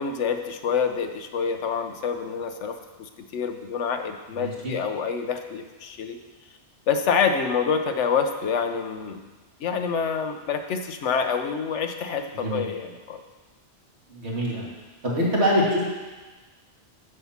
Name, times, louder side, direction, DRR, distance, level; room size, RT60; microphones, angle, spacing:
voice 1, 0.0-6.2 6.9-9.2 9.6-13.2, left 6 dB, 85° left, 6 dB, 1.1 m, -27 dB
voice 2, 4.3-4.8 12.3-12.7 14.1-14.6 15.0-15.9, equal, 70° right, -5 dB, 2.5 m, -24 dB
7.9 x 5.6 x 7.2 m, 1.3 s
omnidirectional pair, 1.2 m